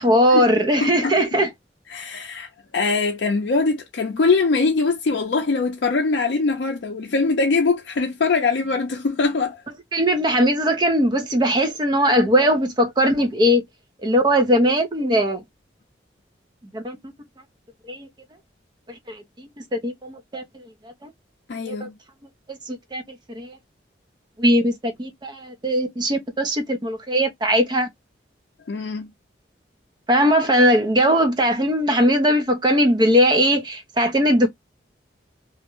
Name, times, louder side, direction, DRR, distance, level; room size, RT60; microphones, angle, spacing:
voice 1, 0.0-1.5 9.9-13.6 14.0-15.4 16.7-17.0 17.9-18.1 19.1-20.4 21.0-21.1 21.6-21.8 22.5-23.0 23.3-23.6 24.4-27.9 30.1-34.5, equal, 25° right, 0.5 m, -19 dB
voice 2, 0.8-1.4 1.9-9.6 21.5-21.9 28.7-29.1, left 4 dB, 70° left, 0.4 m, -22 dB
2.4 x 2.1 x 2.9 m
head